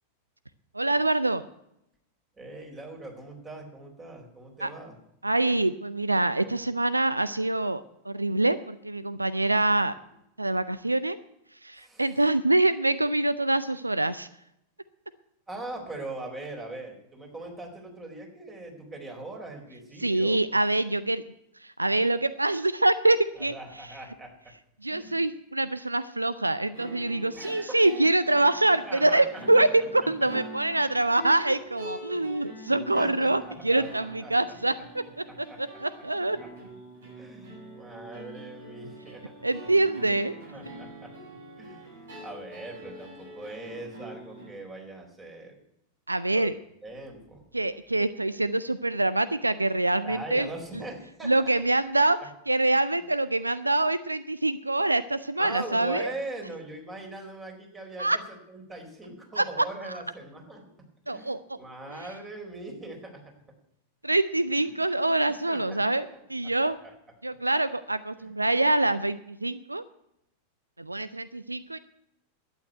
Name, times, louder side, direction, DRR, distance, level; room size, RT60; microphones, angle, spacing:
voice 1, 0.7-1.4 4.6-4.7 5.2-10.0 10.4-11.2 11.5-14.3 20.0-21.2 21.6-23.9 24.8-36.4 39.4-40.3 46.1-46.5 47.5-50.8 51.2-52.2 52.5-56.1 58.0-58.2 59.4-60.0 61.1-61.6 61.9-62.1 64.0-66.8 67.2-69.8 70.8-71.8, right 2 dB, 85° right, 15 dB, 0.5 m, -25 dB
voice 2, 2.4-4.9 11.8-12.1 15.5-20.4 23.4-24.5 24.9-25.1 27.3-27.8 28.9-29.6 32.1-32.3 32.9-34.3 35.3-35.6 36.4-36.5 37.2-39.3 40.5-41.1 41.6-45.5 46.3-46.5 46.8-47.4 50.0-51.5 55.4-58.1 58.5-60.6 61.1-63.2 64.6-64.7 65.3-66.0 66.8-66.9 68.2-68.3, right 2 dB, 20° right, 2 dB, 4.3 m, -41 dB
sound 1, 26.7-44.5, right 1 dB, 65° right, 7.1 m, -44 dB
11.5 x 9.1 x 9.2 m, 0.80 s
figure-of-eight pair, 90°, 0 cm